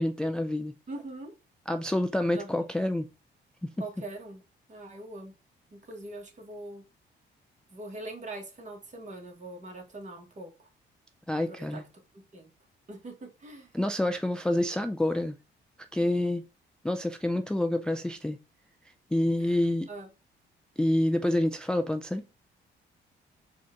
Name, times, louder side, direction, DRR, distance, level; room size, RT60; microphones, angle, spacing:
voice 1, 0.0-0.7 1.7-3.1 3.6-3.7 11.3-11.8 13.7-15.4 15.9-16.5 16.8-18.4 19.1-19.9 20.8-22.2, left 1 dB, 5° left, 0.3 m, -27 dB
voice 2, 0.9-1.3 2.3-2.5 3.8-4.4 4.7-5.3 5.7-6.8 7.7-10.5 11.5-11.8 12.3-12.5 12.9-13.7 19.4-20.1, right 2 dB, 35° right, 1.4 m, -42 dB
4.1 x 2.5 x 4.4 m
cardioid pair, 90°, 20 cm